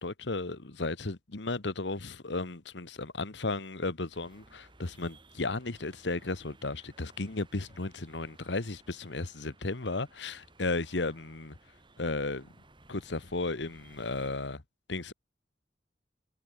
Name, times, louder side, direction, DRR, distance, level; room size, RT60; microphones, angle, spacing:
voice 1, 0.0-11.5 12.0-12.5 12.9-14.6 14.9-15.1, left 3 dB, 85° left, 1.4 m, -34 dB
sound 1, 4.1-14.3, right 2 dB, 30° right, 3.8 m, -59 dB
head